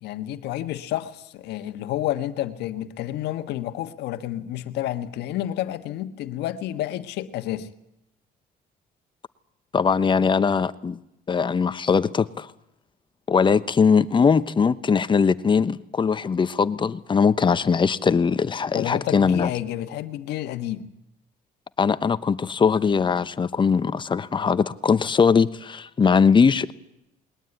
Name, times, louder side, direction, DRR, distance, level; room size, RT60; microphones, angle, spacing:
voice 1, 0.0-7.7 18.7-20.9, left 13 dB, 80° left, 1.4 m, -30 dB
voice 2, 9.7-11.0 11.3-12.5 13.3-19.5 21.8-26.7, left 5 dB, 30° left, 0.9 m, -20 dB
20.5 x 19.5 x 9.2 m
cardioid pair, 110°, 17 cm